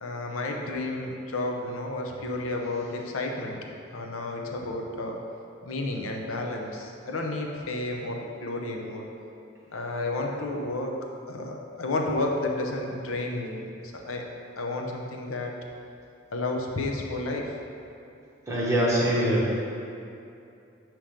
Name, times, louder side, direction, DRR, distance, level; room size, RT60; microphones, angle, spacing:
voice 1, 0.0-3.6 3.9-5.2 5.6-9.0 9.7-11.0 11.3-14.2 14.6-15.5 16.3-17.5, left 2 dB, 85° left, 1 dB, 0.7 m, -31 dB
voice 2, 18.5-19.6, right 1 dB, 15° right, -6 dB, 1.1 m, -23 dB
7.3 x 3.0 x 5.0 m, 2.6 s
head